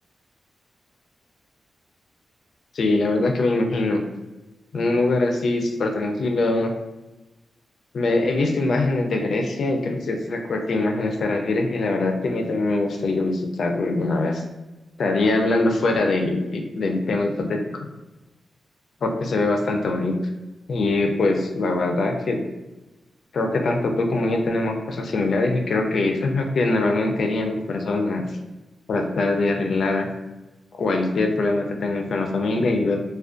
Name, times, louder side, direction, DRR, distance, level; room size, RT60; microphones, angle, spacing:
voice 1, 2.7-4.0 4.7-6.7 7.9-14.4 15.0-17.6 19.0-20.2 20.7-22.4 23.3-28.3 28.9-30.1 30.7-33.0, left 2 dB, 70° left, 3 dB, 0.3 m, -23 dB
2.4 x 2.1 x 2.4 m, 1.0 s
wide cardioid pair, 105°, 0 cm